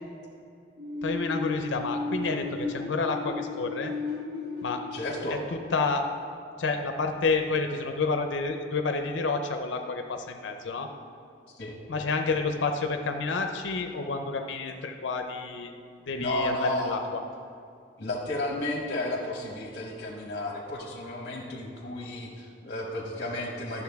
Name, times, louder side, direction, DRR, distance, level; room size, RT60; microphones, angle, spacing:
sound 1, 0.8-6.4, left 3 dB, 60° right, 1.4 m, -35 dB
voice 1, 1.0-3.9 4.6-4.8 5.3-6.1 6.6-10.9 11.9-15.7 16.1-17.2, left 4 dB, 90° left, 5 dB, 0.5 m, -29 dB
voice 2, 4.9-5.4 11.6-11.8 16.1-16.9 18.0-23.8, left 1 dB, 50° left, -1 dB, 1.0 m, -32 dB
10.5 x 7.0 x 3.5 m, 2.5 s
head